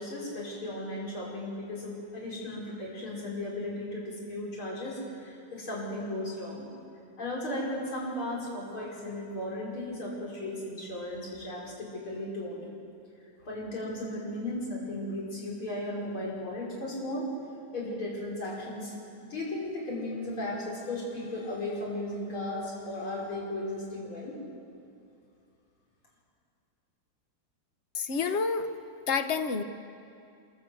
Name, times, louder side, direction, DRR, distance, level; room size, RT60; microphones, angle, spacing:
voice 1, 0.0-6.7 7.2-12.6 13.4-17.3 17.7-19.0 19.2-24.4, left 1 dB, 75° left, -4 dB, 6.2 m, -36 dB
voice 2, 27.9-28.7 29.1-29.6, left 5 dB, 45° left, 8 dB, 0.9 m, -28 dB
26.5 x 14.0 x 7.9 m, 2.6 s
omnidirectional pair, 2.3 m